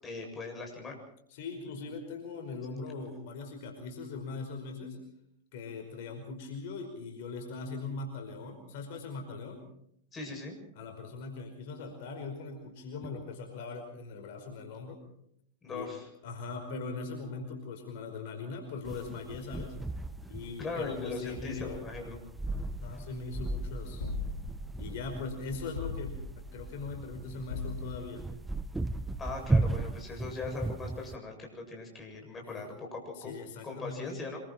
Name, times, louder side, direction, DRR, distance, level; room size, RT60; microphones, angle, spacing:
voice 1, 0.0-1.0 10.1-10.6 15.6-16.1 20.6-22.2 29.2-33.3 33.6-34.4, left 3 dB, 20° left, 1 dB, 7.5 m, -40 dB
voice 2, 1.3-5.0 5.5-9.6 10.7-15.0 15.6-15.9 16.2-19.8 20.2-21.9 22.8-24.0 24.8-28.2 32.4-32.7 33.1-34.3, left 4 dB, 60° left, 4 dB, 5.1 m, -40 dB
sound 1, 18.8-31.2, right 2 dB, 10° right, 1.0 m, -36 dB
sound 2, 24.0-24.8 25.7-26.5 27.5-28.3, left 4 dB, 85° left, 2.9 m, -39 dB
26.5 x 23.5 x 4.5 m, 0.70 s
hypercardioid pair, 100°, 0 cm